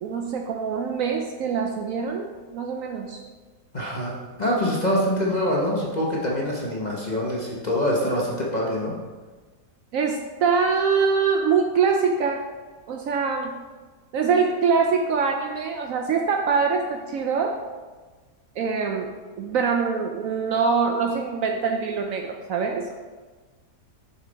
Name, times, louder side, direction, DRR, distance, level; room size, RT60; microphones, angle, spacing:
voice 1, 0.0-3.2 9.9-12.4 12.9-13.5 14.1-17.6 18.6-19.1 19.4-23.0, right 5 dB, 70° right, 3 dB, 0.8 m, -24 dB
voice 2, 3.7-8.9, left 1 dB, 35° left, -4 dB, 0.8 m, -25 dB
6.5 x 5.6 x 3.9 m, 1.4 s
omnidirectional pair, 1.7 m